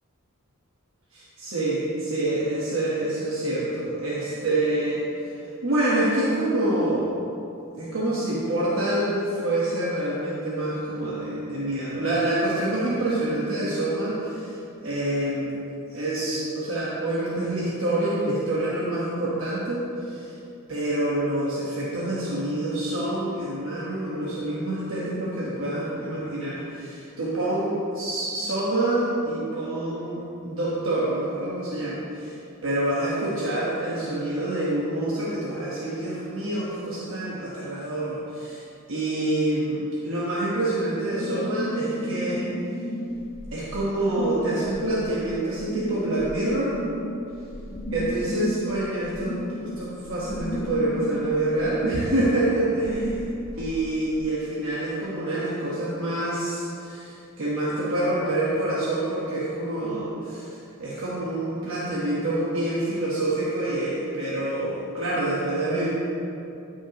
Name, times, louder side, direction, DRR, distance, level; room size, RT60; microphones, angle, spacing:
voice 1, 1.1-5.3 5.6-7.1 7.8-14.6 14.8-15.6 15.9-20.3 20.7-32.4 32.6-38.6 38.9-42.5 43.5-46.8 47.9-53.2 53.6-60.5 60.8-65.9, right 1 dB, 65° right, -7 dB, 1.2 m, -27 dB
sound 1, 41.2-54.2, equal, 45° left, 0.6 m, -34 dB
13.0 x 5.7 x 3.0 m, 2.8 s
head